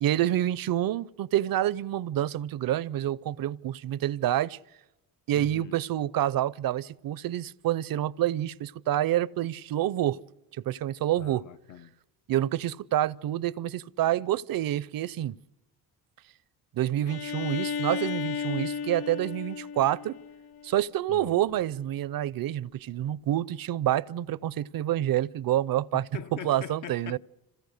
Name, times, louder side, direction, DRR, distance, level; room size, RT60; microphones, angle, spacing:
voice 1, 0.0-4.6 5.3-10.2 10.6-11.4 12.3-15.4 16.7-20.2 20.6-26.0 26.4-27.2, right 12 dB, 60° right, 0.6 m, -28 dB
voice 2, 5.3-5.8 11.2-11.9 21.1-21.4 25.9-27.2, left 9 dB, 50° left, 0.8 m, -42 dB
Bowed string instrument, 17.1-20.8, left 6 dB, 90° left, 1.0 m, -34 dB
26.0 x 17.0 x 6.6 m
cardioid pair, 80°, 40 cm